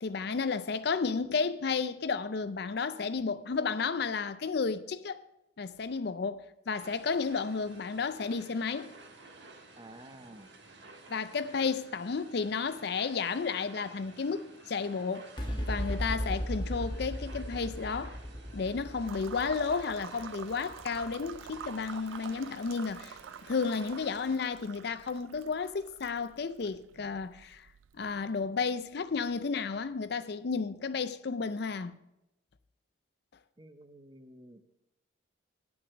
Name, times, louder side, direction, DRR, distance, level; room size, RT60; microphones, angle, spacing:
voice 1, 0.0-5.2 5.6-8.9 11.1-15.3 15.6-18.2 18.5-23.2 23.5-27.7 28.0-32.0, left 5 dB, 55° left, 0.4 m, -32 dB
sound 1, 6.8-24.4, right 3 dB, 65° right, 1.4 m, -53 dB
voice 2, 9.8-10.5 33.6-34.6, right 1 dB, 25° right, 0.7 m, -51 dB
sound 2, 15.4-22.1, equal, 25° left, 1.1 m, -37 dB
sound 3, 19.1-28.8, right 8 dB, 85° right, 0.4 m, -48 dB
9.9 x 6.0 x 6.9 m
head